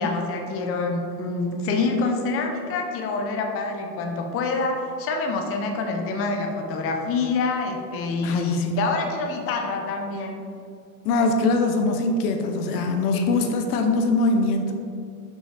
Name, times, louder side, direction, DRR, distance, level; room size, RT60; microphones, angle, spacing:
voice 1, 0.0-10.5 13.1-13.2, left 3 dB, 30° left, 3 dB, 0.7 m, -26 dB
voice 2, 8.2-8.7 11.0-14.7, left 3 dB, 65° left, 5 dB, 0.9 m, -22 dB
5.6 x 5.5 x 3.3 m, 2.3 s
hypercardioid pair, 100°, 49 cm